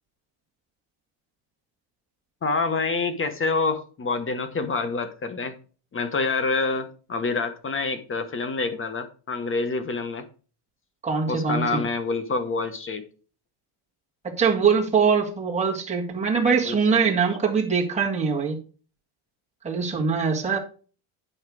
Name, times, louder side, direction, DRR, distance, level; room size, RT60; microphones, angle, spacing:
voice 1, 2.4-5.5 5.9-10.3 11.3-13.0 16.7-17.0, left 3 dB, 25° left, 10 dB, 1.1 m, -27 dB
voice 2, 11.0-11.8 14.2-18.6 19.6-20.6, right 5 dB, 15° right, -2 dB, 1.8 m, -23 dB
9.1 x 5.5 x 4.8 m, 0.38 s
cardioid pair, 135°, 49 cm